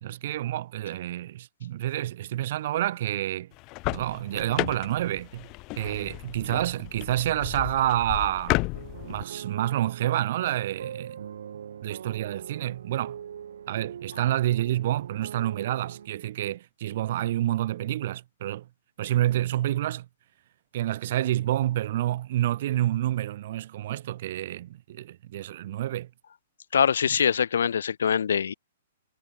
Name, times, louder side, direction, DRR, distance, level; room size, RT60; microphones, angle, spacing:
voice 1, 0.0-3.5 3.8-5.5 5.8-8.6 9.1-11.2 11.8-13.2 13.7-18.7 19.0-20.1 20.7-26.1, right 13 dB, 55° right, 1.5 m, -28 dB
sound 1, 3.5-9.2, left 25 dB, 35° left, 1.8 m, -33 dB
sound 2, 8.7-16.1, right 8 dB, 75° right, 3.1 m, -42 dB
voice 2, 26.7-28.5, left 7 dB, 80° left, 1.1 m, -23 dB
hypercardioid pair, 135°, 0 cm